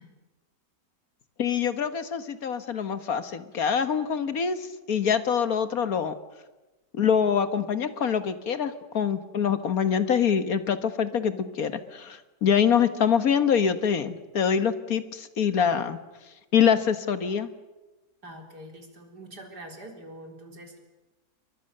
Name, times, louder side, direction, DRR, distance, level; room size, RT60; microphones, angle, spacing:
voice 1, 1.4-6.1 6.9-16.0 16.5-17.5, left 7 dB, 65° left, 11 dB, 1.8 m, -25 dB
voice 2, 18.2-20.8, right 1 dB, 90° right, 3 dB, 4.6 m, -44 dB
29.0 x 23.0 x 6.7 m, 1.1 s
omnidirectional pair, 1.7 m